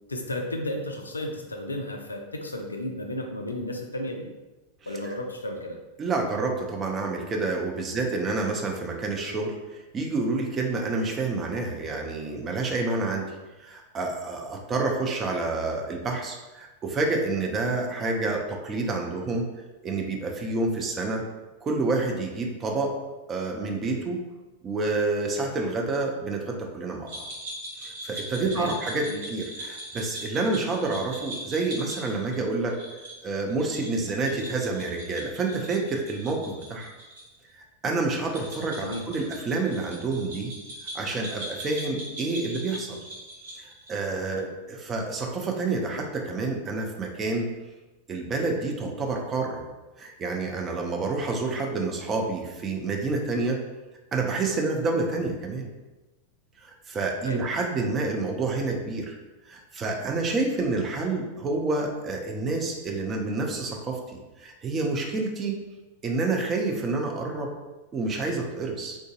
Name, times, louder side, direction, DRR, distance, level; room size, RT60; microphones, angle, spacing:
voice 1, 0.1-4.3 4.9-5.8 7.9-8.0 28.4-28.7 29.0-29.2 38.8-39.3 44.3-44.5 57.3-57.5, left 1 dB, 80° left, 3 dB, 0.3 m, -33 dB
voice 2, 6.0-19.5 19.8-21.2 21.6-22.9 23.3-24.2 24.6-27.2 27.8-32.8 33.2-36.9 37.8-40.5 40.9-43.0 43.6-47.5 48.1-49.6 50.0-53.6 54.1-55.7 56.6-59.1 59.5-65.6 66.0-67.5 67.9-69.0, right 3 dB, 25° right, 1 dB, 0.5 m, -28 dB
sound 1, 27.1-37.2 37.5-37.6 38.2-44.0, right 1 dB, 60° right, 0.9 m, -40 dB
3.6 x 2.5 x 2.4 m, 1.1 s
figure-of-eight pair, 90°, 0 cm